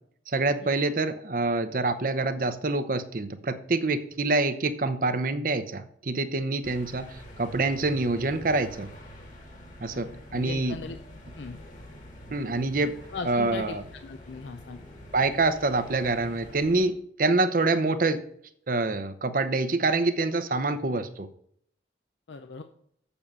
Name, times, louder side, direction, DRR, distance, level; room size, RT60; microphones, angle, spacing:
voice 1, 0.3-8.9 9.8-10.8 12.3-12.9 13.2-13.8 15.1-18.2 18.7-21.3, right 3 dB, 50° right, 11 dB, 0.7 m, -26 dB
sound 1, 6.6-16.9, equal, 45° left, 1.8 m, -46 dB
voice 2, 9.9-11.0 11.4-11.6 13.1-13.8 14.0-14.8 22.3-22.6, left 4 dB, 90° left, 8 dB, 0.6 m, -38 dB
7.4 x 7.0 x 5.4 m, 0.66 s
head